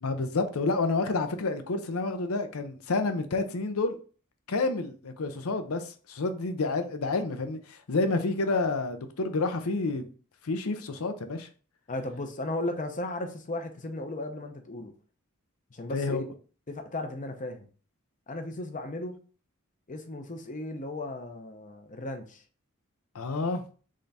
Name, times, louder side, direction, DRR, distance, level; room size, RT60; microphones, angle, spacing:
voice 1, 0.0-4.0 4.5-10.1 10.4-11.5 15.9-16.2 23.1-23.6, left 3 dB, 70° left, 0.7 m, -29 dB
voice 2, 11.9-14.9 15.7-16.2 16.7-17.7 18.3-19.2 19.9-22.4, left 2 dB, 35° left, 0.7 m, -35 dB
3.7 x 3.4 x 4.1 m
head